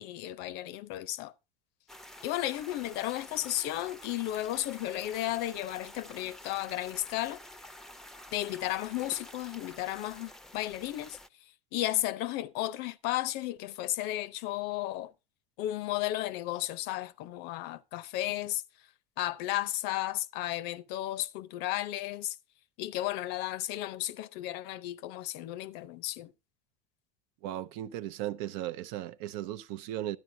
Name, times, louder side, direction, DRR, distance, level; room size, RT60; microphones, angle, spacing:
voice 1, 0.0-1.3 2.2-7.4 8.3-11.2 11.7-15.1 15.6-18.6 19.2-22.4 22.8-26.3, left 15 dB, 60° left, 0.6 m, -34 dB
sound 1, 1.9-11.3, left 1 dB, ahead, 0.6 m, -49 dB
voice 2, 27.4-30.2, right 13 dB, 70° right, 0.6 m, -36 dB
12.5 x 9.4 x 2.7 m
hypercardioid pair, 85°, 19 cm